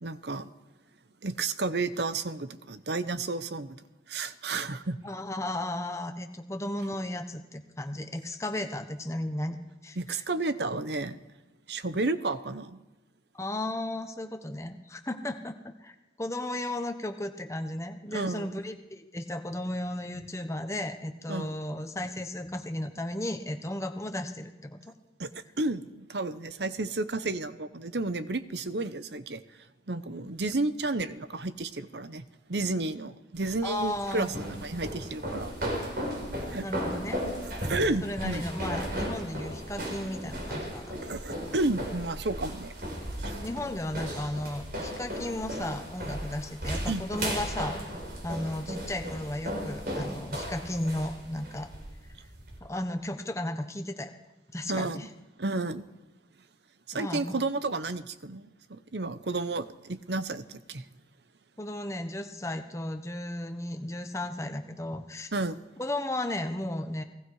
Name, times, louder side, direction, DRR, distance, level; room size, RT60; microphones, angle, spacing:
voice 1, 0.0-0.5 1.2-3.8 4.1-5.0 10.0-11.2 11.7-12.8 18.1-18.5 21.3-21.5 25.2-29.4 29.9-35.6 35.8-35.9 36.5-36.7 37.4-38.4 41.0-42.7 43.2-43.3 46.9-47.0 54.7-55.0 55.4-55.8 56.9-60.8 65.3-65.6, right 2 dB, 70° right, 13 dB, 1.0 m, -32 dB
voice 2, 5.0-10.2 13.3-24.9 33.6-34.3 36.6-37.2 38.0-40.9 43.4-47.8 48.2-51.7 52.6-54.2 54.5-55.1 56.9-57.4 61.6-65.3 65.8-67.0, left 1 dB, 15° left, 7 dB, 1.2 m, -34 dB
sound 1, 33.3-52.6, equal, 55° right, 5.0 m, -36 dB
29.0 x 19.0 x 4.9 m, 1.0 s
head